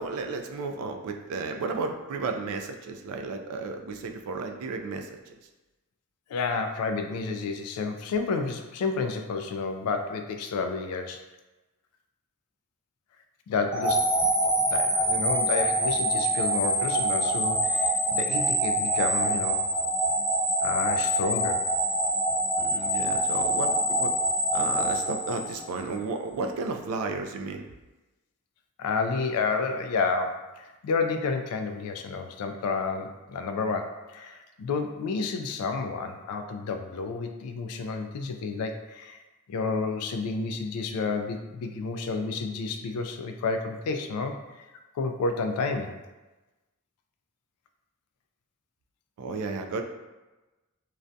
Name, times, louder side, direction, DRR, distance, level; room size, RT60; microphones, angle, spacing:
voice 1, 0.0-5.2 22.6-24.1 24.5-27.7 49.2-49.8, right 3 dB, 75° right, 8 dB, 0.3 m, -33 dB
voice 2, 6.3-11.2 13.5-14.1 14.7-19.6 20.6-21.6 28.8-39.2 39.5-44.4 44.9-46.0, left 4 dB, 85° left, 10 dB, 0.3 m, -30 dB
sound 1, 13.7-25.9, right 1 dB, 5° right, 0.4 m, -25 dB
2.4 x 2.1 x 2.5 m, 1.1 s
head